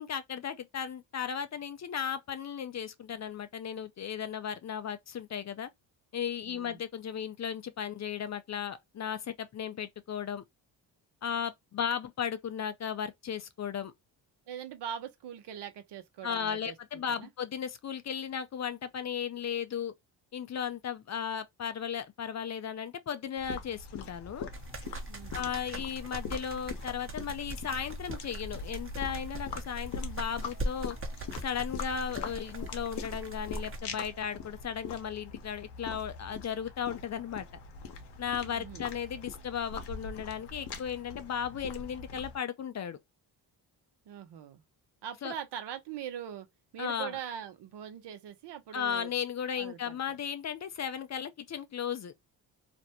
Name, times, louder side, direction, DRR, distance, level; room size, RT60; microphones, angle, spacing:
voice 1, 0.0-5.7 6.1-10.4 11.2-13.9 16.2-19.9 20.3-24.5 25.3-31.0 31.4-37.5 38.2-43.0 45.2-45.3 46.8-47.2 48.7-52.1, left 8 dB, 40° left, 0.5 m, -35 dB
voice 2, 6.5-6.8 14.5-16.7 17.1-17.3 25.1-25.6 38.4-38.9 44.1-44.6 45.0-46.5 46.7-49.1 49.6-50.0, right 9 dB, 65° right, 0.8 m, -42 dB
sound 1, 23.4-42.4, left 5 dB, 65° left, 0.9 m, -43 dB
sound 2, 24.5-33.8, right 1 dB, 30° right, 0.9 m, -40 dB
2.5 x 2.1 x 2.8 m
supercardioid pair, 65°, 44 cm